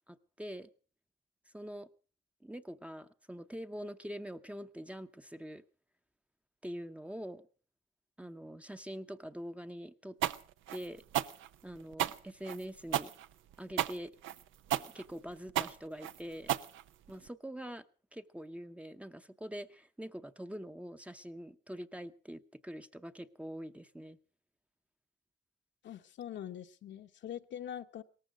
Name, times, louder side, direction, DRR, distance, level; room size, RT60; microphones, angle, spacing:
voice 1, 0.1-0.7 1.5-1.9 2.4-5.6 6.6-7.4 8.2-10.2 10.7-11.0 11.6-13.1 13.6-14.1 14.8-16.6 17.1-17.8 18.1-24.2, equal, 5° right, 9 dB, 0.7 m, -44 dB
sound 1, 10.2-17.3, right 12 dB, 80° right, 0.7 m, -34 dB
voice 2, 25.8-28.0, left 10 dB, 65° left, 7 dB, 1.0 m, -43 dB
17.5 x 14.5 x 5.0 m, 0.39 s
cardioid pair, 90°, 20 cm